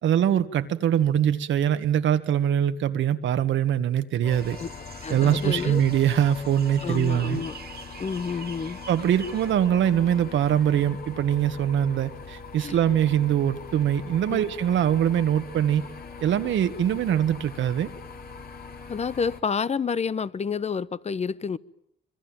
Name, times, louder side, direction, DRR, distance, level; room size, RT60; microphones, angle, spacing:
voice 1, 0.0-4.6 5.1-7.4 8.9-15.9 16.2-17.9, right 10 dB, 70° right, 9 dB, 1.6 m, -23 dB
sound 1, 4.2-19.4, left 5 dB, 50° left, 3.2 m, -41 dB
sound 2, 4.3-9.5, right 7 dB, 55° right, 2.3 m, -46 dB
voice 2, 5.0-5.8 6.8-7.6 8.0-8.8 12.6-12.8 14.3-14.4 18.9-21.6, left 6 dB, 35° left, 18 dB, 1.0 m, -29 dB
26.5 x 22.0 x 9.1 m, 0.76 s
cardioid pair, 90°, 20 cm